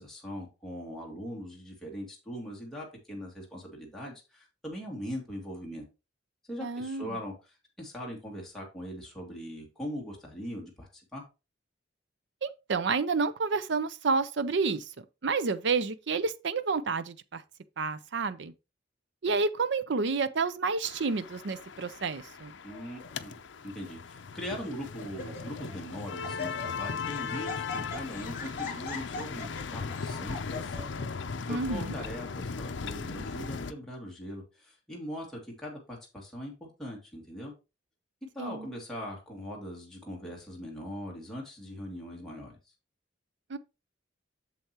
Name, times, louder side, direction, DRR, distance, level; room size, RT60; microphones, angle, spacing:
voice 1, 0.0-5.8 6.5-11.2 22.6-30.9 31.5-37.5 38.3-42.6, equal, 5° left, 2.5 m, -41 dB
voice 2, 6.6-7.1 12.4-14.8 15.2-17.4 17.8-18.5 19.2-22.5 31.5-31.9 38.4-38.7 43.5-43.6, right 4 dB, 65° right, 0.6 m, -29 dB
sound 1, 20.8-33.7, left 5 dB, 70° left, 0.6 m, -38 dB
Laughter, 22.7-23.1 23.8-23.9 24.4-24.7 25.0-25.7 26.0-31.0, left 4 dB, 45° left, 3.2 m, -41 dB
7.9 x 6.9 x 3.0 m
head